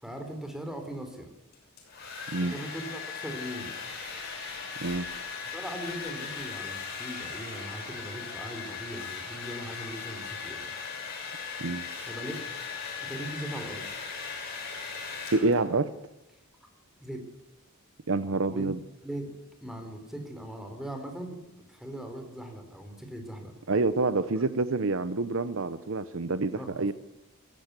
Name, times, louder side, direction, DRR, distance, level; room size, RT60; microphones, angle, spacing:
voice 1, 0.0-1.3 2.4-3.8 5.5-10.7 12.1-12.4 13.0-13.9 17.0-17.2 18.5-18.7 19.0-19.3 19.6-21.4 21.7-23.5 26.5-26.9, right 1 dB, ahead, 4 dB, 3.8 m, -39 dB
Domestic sounds home sounds, 1.5-15.8, left 5 dB, 50° left, 6.9 m, -38 dB
voice 2, 15.3-15.9 18.1-18.8 23.7-26.9, right 3 dB, 65° right, 14 dB, 0.8 m, -27 dB
22.5 x 14.5 x 8.2 m, 0.93 s
head